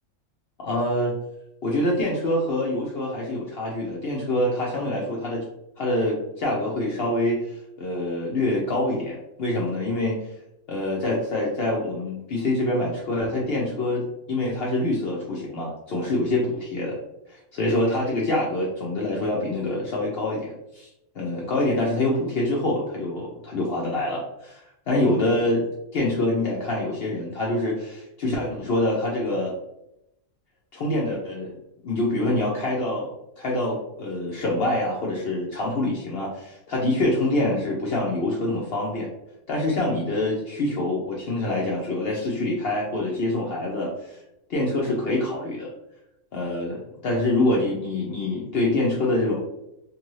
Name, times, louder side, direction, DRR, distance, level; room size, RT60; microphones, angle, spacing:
voice 1, 0.6-1.1 1.6-5.4 5.8-10.2 10.7-17.0 17.3-20.9 21.2-24.6 24.9-25.7 25.9-29.5 30.7-31.5 31.8-33.1 33.4-39.1 39.5-44.2 44.5-45.7 46.3-49.4, left 1 dB, 60° left, -3 dB, 0.7 m, -25 dB
2.6 x 2.5 x 3.0 m, 0.85 s
omnidirectional pair, 1.4 m